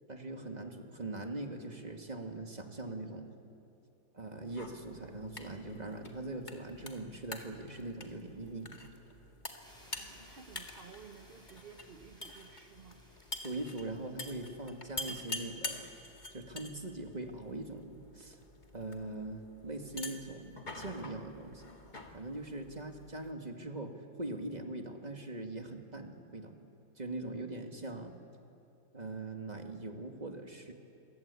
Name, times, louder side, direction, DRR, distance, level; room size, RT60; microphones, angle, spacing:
voice 1, 0.1-3.3 4.1-8.8 13.4-15.9 16.3-18.4 18.7-21.8 22.1-23.9 24.2-26.6 27.0-28.1 28.9-30.7, right 2 dB, 20° right, 4 dB, 2.1 m, -41 dB
sound 1, 4.5-23.3, left 2 dB, 25° left, 1.9 m, -47 dB
sound 2, 9.6-15.2, equal, ahead, 6.3 m, -61 dB
voice 2, 9.9-13.0, right 6 dB, 40° right, 5 dB, 0.9 m, -54 dB
28.5 x 23.0 x 8.4 m, 2.7 s
omnidirectional pair, 2.1 m